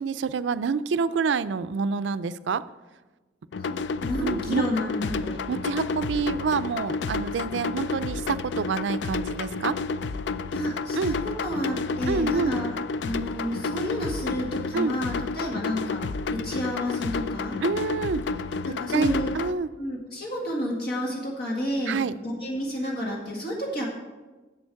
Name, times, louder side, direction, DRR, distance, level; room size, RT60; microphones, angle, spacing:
voice 1, 0.0-2.6 4.2-4.6 5.5-9.8 10.9-11.2 12.1-12.6 14.7-15.0 17.6-18.2 18.9-19.7 21.9-22.1, right 5 dB, 90° right, 15 dB, 0.4 m, -27 dB
sound 1, 3.5-19.5, left 4 dB, 75° left, 0.4 m, -30 dB
voice 2, 3.6-5.4 10.5-12.7 13.0-16.0 16.3-17.6 18.6-19.3 19.8-23.9, equal, 60° left, -1 dB, 1.8 m, -30 dB
10.5 x 7.5 x 4.7 m, 1.2 s
head